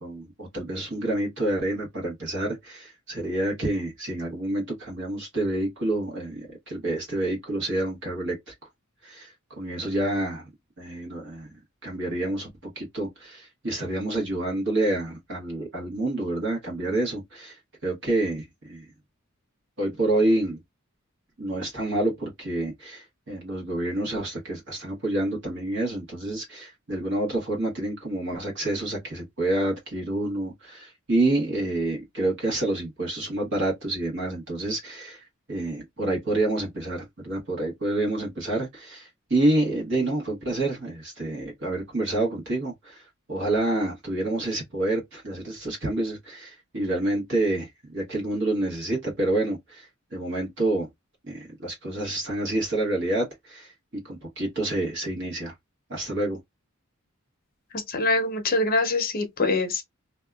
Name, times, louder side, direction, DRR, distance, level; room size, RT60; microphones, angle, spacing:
voice 1, 0.0-8.5 9.0-10.5 10.8-11.5 11.8-12.5 12.7-18.8 19.8-20.6 21.4-43.0 43.3-50.9 51.3-55.5 55.9-56.4, right 2 dB, 60° right, 1.2 m, -28 dB
voice 2, 57.7-59.8, left 2 dB, 45° left, 0.6 m, -24 dB
2.6 x 2.3 x 2.3 m
head